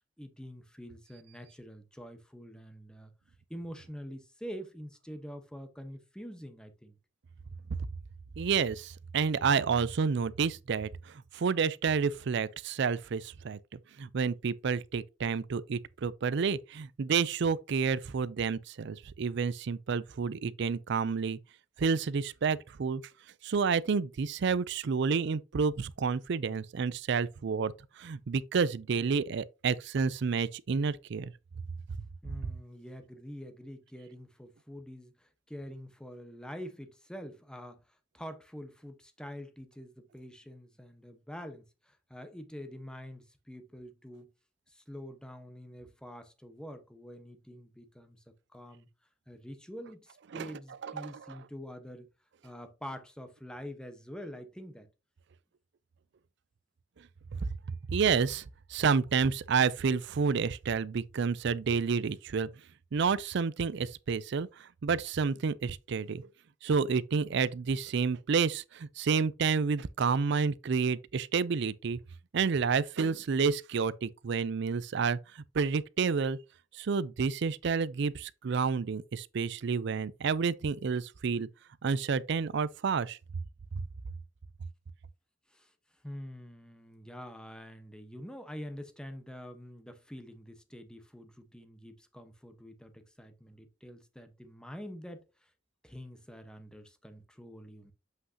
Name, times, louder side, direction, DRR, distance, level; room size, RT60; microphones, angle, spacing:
voice 1, 0.2-3.1 3.5-7.0 32.2-44.3 44.7-48.2 48.5-48.9 49.3-52.1 52.4-54.9 85.5-85.7 86.0-95.5 95.8-97.9, equal, 5° left, 1.0 m, -46 dB
voice 2, 8.4-21.4 21.8-23.0 23.4-31.3 50.3-50.5 50.8-51.4 57.4-57.5 57.9-62.5 62.9-66.3 66.6-72.0 72.3-76.4 76.7-81.5 81.8-83.2, right 5 dB, 65° right, 0.4 m, -30 dB
7.8 x 5.5 x 2.7 m
head